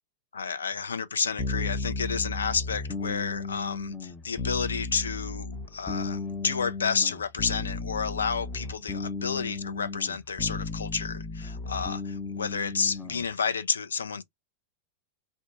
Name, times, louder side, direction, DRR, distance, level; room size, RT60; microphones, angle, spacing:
voice 1, 0.3-14.2, left 6 dB, 70° left, 0.3 m, -31 dB
sound 1, 1.4-13.3, left 3 dB, 15° left, 0.6 m, -34 dB
2.6 x 2.2 x 2.2 m
figure-of-eight pair, 90°, 0 cm